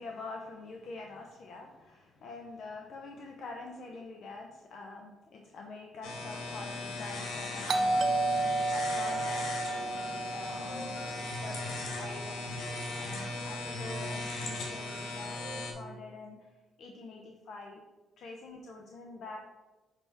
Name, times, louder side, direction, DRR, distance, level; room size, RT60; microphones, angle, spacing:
voice 1, 0.0-8.1 8.6-11.0 11.4-12.6 12.9-16.4 16.8-17.8 18.2-19.4, left 3 dB, 65° left, 1 dB, 0.7 m, -46 dB
sound 1, 6.0-15.7, left 2 dB, 85° left, 1.6 m, -38 dB
Doorbell, 7.7-12.3, right 2 dB, 60° right, 0.5 m, -32 dB
5.9 x 3.4 x 5.7 m, 1.2 s
cardioid pair, 90°, 0 cm